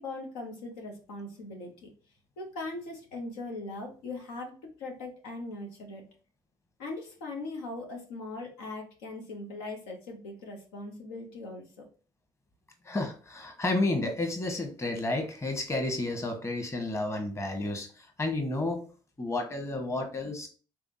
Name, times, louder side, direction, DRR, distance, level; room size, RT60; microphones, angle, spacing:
voice 1, 0.0-1.9 2.4-6.0 6.8-11.6, left 2 dB, 85° left, 1 dB, 0.8 m, -40 dB
voice 2, 12.9-17.9 18.2-18.8 19.2-20.5, left 2 dB, 25° left, 4 dB, 1.2 m, -31 dB
3.5 x 3.3 x 2.7 m, 0.37 s
hypercardioid pair, 55°, 12 cm